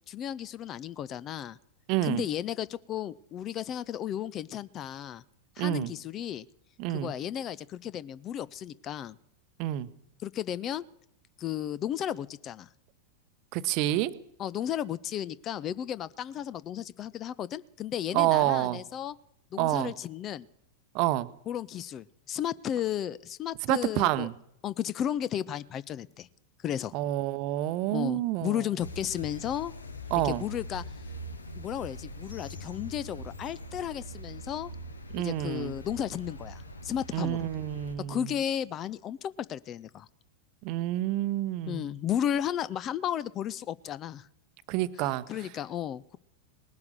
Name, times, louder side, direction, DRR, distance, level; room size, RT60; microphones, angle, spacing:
voice 1, 0.1-1.6 2.0-5.2 5.6-6.5 6.9-9.2 10.2-10.9 11.4-12.7 14.4-19.1 19.5-20.5 21.5-24.3 24.6-26.3 26.6-26.9 27.9-29.7 30.2-30.8 31.6-34.7 35.1-37.5 38.1-40.1 41.7-44.3 45.0-46.2, left 10 dB, 30° left, 20 dB, 0.5 m, -34 dB
voice 2, 1.9-2.3 5.6-5.9 6.8-7.1 9.6-9.9 13.5-14.1 18.1-18.8 19.6-19.9 20.9-21.3 23.7-24.3 26.9-28.6 30.1-30.4 35.1-35.7 37.1-38.2 40.6-41.9 44.7-45.2, right 15 dB, 45° right, 14 dB, 0.8 m, -28 dB
sound 1, 28.8-37.9, left 1 dB, 75° left, 1.2 m, -42 dB
19.0 x 10.5 x 6.6 m, 0.76 s
figure-of-eight pair, 90°, 0 cm